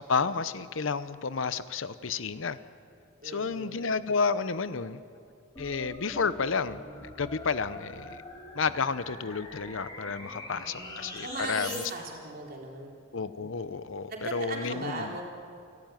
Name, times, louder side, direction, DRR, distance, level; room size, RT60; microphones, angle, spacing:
voice 1, 0.1-2.6 3.2-5.0 5.6-8.2 8.5-11.8 13.1-15.2, left 5 dB, 75° left, 14 dB, 0.8 m, -31 dB
voice 2, 3.2-3.9 10.5-12.9 14.1-15.2, right 2 dB, 45° right, -1 dB, 3.9 m, -39 dB
sound 1, 5.6-11.9, left 2 dB, 20° left, 3.0 m, -43 dB
29.0 x 12.0 x 9.2 m, 2.4 s
head